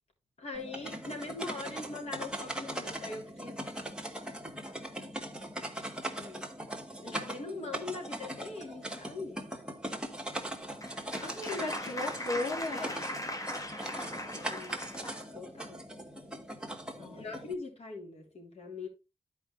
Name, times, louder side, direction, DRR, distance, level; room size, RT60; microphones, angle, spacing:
voice 1, 0.4-3.6 6.1-6.4 7.0-9.4 14.2-14.9 15.3-15.8 17.1-18.9, left 3 dB, 70° left, 3.2 m, -42 dB
sound 1, 0.5-17.5, right 1 dB, 5° right, 1.6 m, -40 dB
Applause, 10.4-15.2, left 1 dB, 30° left, 1.4 m, -39 dB
voice 2, 11.2-13.2 17.0-17.2, left 2 dB, 90° left, 2.4 m, -36 dB
12.0 x 5.0 x 3.2 m
cardioid pair, 70°, 11 cm